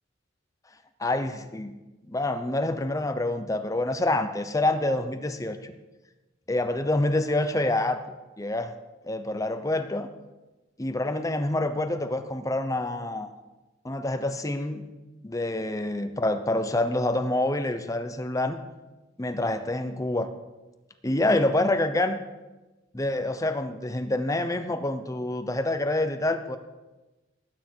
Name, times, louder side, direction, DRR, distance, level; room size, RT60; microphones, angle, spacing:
voice 1, 1.0-1.8 2.1-5.7 6.5-8.0 8.4-8.7 9.0-10.1 10.8-13.3 13.8-14.9 15.2-18.6 19.2-20.3 21.0-22.2 22.9-26.6, left 2 dB, 20° left, 8 dB, 0.7 m, -27 dB
19.0 x 9.6 x 4.5 m, 1.1 s
head